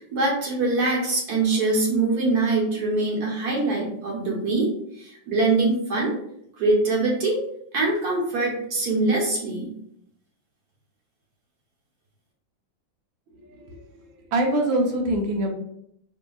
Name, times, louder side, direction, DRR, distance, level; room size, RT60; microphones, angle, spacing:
voice 1, 0.0-4.7 5.0-6.2 6.6-7.4 7.7-9.7, right 3 dB, 60° right, -2 dB, 1.4 m, -23 dB
voice 2, 13.4-13.8 14.3-15.5, right 1 dB, 80° right, 2 dB, 1.5 m, -24 dB
5.1 x 2.8 x 2.3 m, 0.71 s
omnidirectional pair, 2.1 m